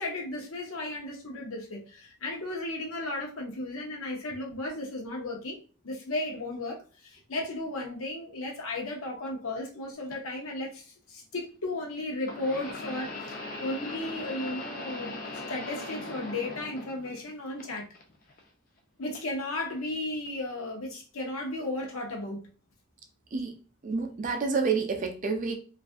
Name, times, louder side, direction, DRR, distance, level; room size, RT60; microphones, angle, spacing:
voice 1, 0.0-5.6 5.8-15.2 15.5-17.9 19.0-22.5, left 2 dB, 75° left, 0.7 m, -35 dB
sound 1, 10.1-10.2 12.2-17.3 17.6-18.4 19.1-19.3 20.3-20.4, left 2 dB, 40° left, 0.4 m, -39 dB
voice 2, 23.8-25.5, right 4 dB, 35° right, 0.4 m, -29 dB
2.5 x 2.4 x 2.3 m
head